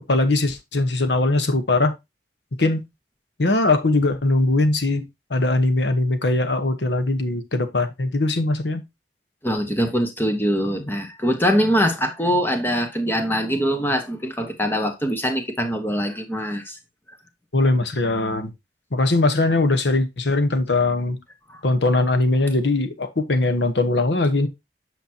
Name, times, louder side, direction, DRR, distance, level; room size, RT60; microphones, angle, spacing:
voice 1, 0.1-1.9 2.6-2.8 3.4-8.8 17.5-18.5 18.9-21.2 21.6-24.5, left 2 dB, 80° left, 1.1 m, -20 dB
voice 2, 9.4-16.8 21.5-21.6, equal, 10° left, 1.2 m, -23 dB
8.2 x 6.0 x 2.8 m
head